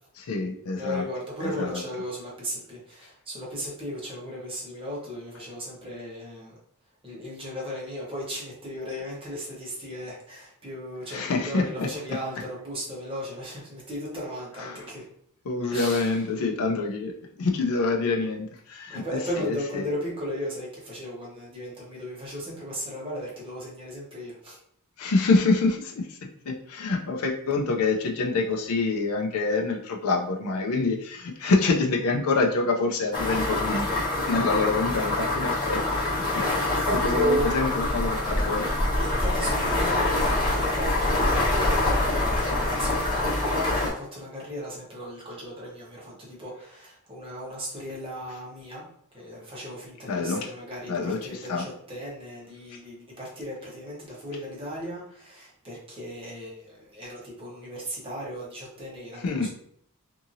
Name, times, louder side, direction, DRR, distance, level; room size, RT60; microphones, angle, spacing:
voice 1, 0.1-1.0 1.4-1.8 11.1-11.9 14.6-14.9 15.4-17.1 17.4-19.9 25.0-34.0 34.3-36.0 36.3-36.4 36.7-38.7 50.1-50.5 50.9-51.6 59.1-59.5, left 3 dB, 70° left, 1 dB, 0.4 m, -26 dB
voice 2, 0.8-6.6 7.0-15.0 15.7-16.1 18.9-24.6 34.5-34.7 36.7-37.5 39.1-48.9 49.1-59.5, equal, 25° right, -5 dB, 1.0 m, -35 dB
sound 1, 33.1-43.9, left 2 dB, 20° left, 1.1 m, -25 dB
2.7 x 2.6 x 2.6 m, 0.67 s
head